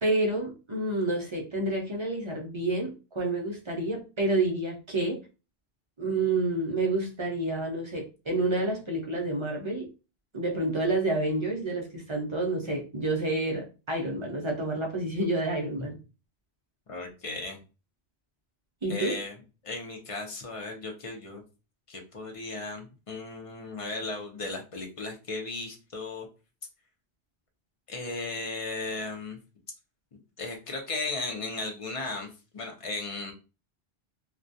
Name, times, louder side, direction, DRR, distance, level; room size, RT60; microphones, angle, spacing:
voice 1, 0.0-5.2 6.0-9.9 10.3-16.0 18.8-19.2, right 2 dB, 40° right, 0 dB, 0.4 m, -29 dB
voice 2, 16.9-17.6 18.9-19.3 19.6-21.4 21.9-26.3 27.9-29.4 30.4-33.3, left 3 dB, 40° left, 2 dB, 0.5 m, -36 dB
2.2 x 2.2 x 2.6 m, 0.31 s
omnidirectional pair, 1.1 m